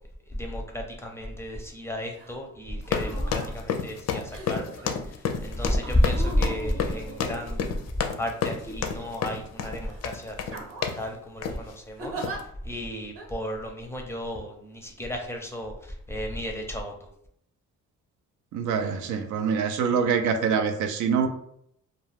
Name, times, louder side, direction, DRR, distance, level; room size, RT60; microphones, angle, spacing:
voice 1, 0.3-4.9 5.4-7.6 8.2-10.7 11.0-12.1 12.6-16.9, equal, 10° left, 2 dB, 0.5 m, -31 dB
sound 1, 2.1-2.4 2.8-3.5 4.3-4.8 5.8-7.9 8.7-9.4 9.8-10.0 10.5-11.1 12.0-12.4 13.2-13.3, right 3 dB, 50° right, 0.7 m, -40 dB
sound 2, 2.8-11.1 11.4-11.7 12.2-12.4, left 7 dB, 60° left, 0.4 m, -31 dB
voice 2, 18.5-21.3, right 6 dB, 80° right, 6 dB, 0.5 m, -25 dB
2.3 x 2.2 x 3.2 m, 0.70 s
cardioid pair, 90°, 30 cm